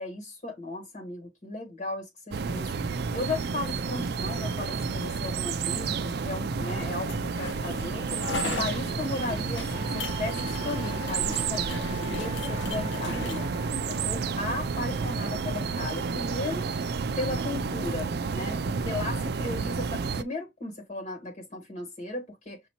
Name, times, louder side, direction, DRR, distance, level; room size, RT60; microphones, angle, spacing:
voice 1, 0.0-2.7 3.1-8.1 8.6-13.4 13.8-16.7 17.2-22.6, left 2 dB, 40° left, 1.5 m, -36 dB
sound 1, 2.3-20.2, right 5 dB, 55° right, 0.4 m, -31 dB
sound 2, 6.6-13.5, left 3 dB, 70° left, 0.8 m, -37 dB
Wind instrument woodwind instrument, 9.7-14.1, left 4 dB, 30° right, 1.0 m, -43 dB
5.9 x 2.8 x 2.9 m
head